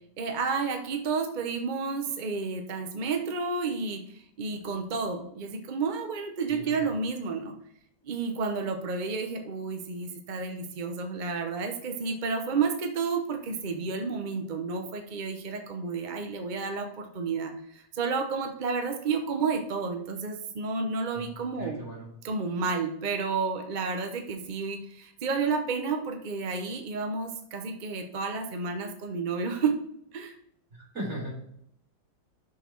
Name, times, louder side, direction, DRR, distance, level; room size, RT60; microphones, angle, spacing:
voice 1, 0.2-7.5 8.0-21.8 22.2-29.7 30.1-30.3, right 4 dB, 55° right, 5 dB, 0.5 m, -31 dB
voice 2, 6.5-6.9 21.1-22.1 30.8-31.4, right 1 dB, 35° right, -4 dB, 4.0 m, -38 dB
6.4 x 6.1 x 4.5 m, 0.73 s
omnidirectional pair, 2.1 m